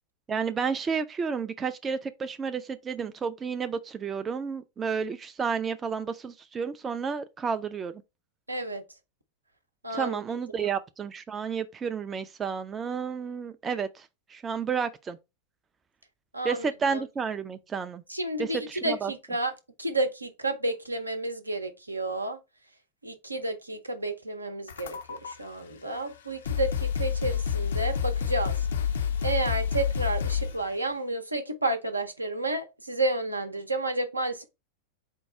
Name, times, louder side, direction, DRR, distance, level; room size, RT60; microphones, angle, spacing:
voice 1, 0.3-7.9 9.9-15.2 16.4-18.0 18.4-19.1, right 6 dB, 20° right, 0.3 m, -31 dB
voice 2, 8.5-8.8 9.8-10.2 10.6-10.7 16.3-17.0 18.1-19.5 19.8-22.4 23.0-28.7 29.2-34.4, right 2 dB, 85° right, 0.7 m, -31 dB
sound 1, 24.7-25.3 26.1-26.2 26.4-30.7, left 8 dB, 65° left, 0.5 m, -28 dB
4.5 x 2.3 x 4.2 m
figure-of-eight pair, 90°, 0 cm